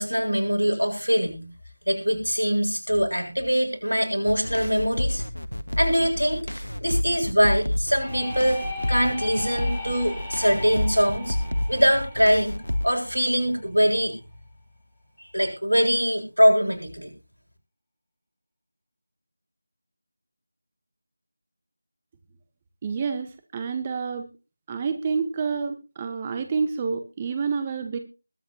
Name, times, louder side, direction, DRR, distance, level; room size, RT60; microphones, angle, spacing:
voice 1, 0.0-1.5 1.9-5.2 5.8-6.5 6.8-8.6 8.9-11.4 11.7-12.6 12.8-14.2 15.2-17.1, equal, 85° right, 2 dB, 7.3 m, -23 dB
sound 1, 4.3-12.9, left 1 dB, 85° left, 1.7 m, -30 dB
sound 2, 8.0-13.6, left 1 dB, 5° left, 5.2 m, -38 dB
voice 2, 22.8-24.3 24.7-28.0, right 5 dB, 20° right, 8 dB, 1.1 m, -28 dB
21.0 x 9.2 x 3.0 m, 0.30 s
figure-of-eight pair, 165°, 0 cm